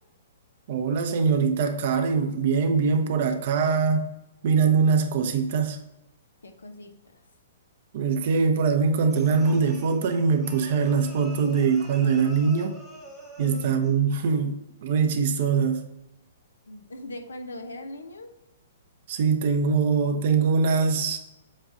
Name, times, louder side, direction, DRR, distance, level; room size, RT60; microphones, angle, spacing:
voice 1, 0.7-4.1 4.4-5.8 7.9-12.8 13.4-15.9 19.1-21.2, right 5 dB, 50° right, 0.8 m, -23 dB
voice 2, 6.4-6.9 13.4-13.7 16.7-18.3, left 1 dB, 75° left, 0.8 m, -40 dB
sound 1, 9.1-14.0, equal, 15° left, 1.2 m, -46 dB
7.3 x 2.5 x 5.0 m
figure-of-eight pair, 115°, 0 cm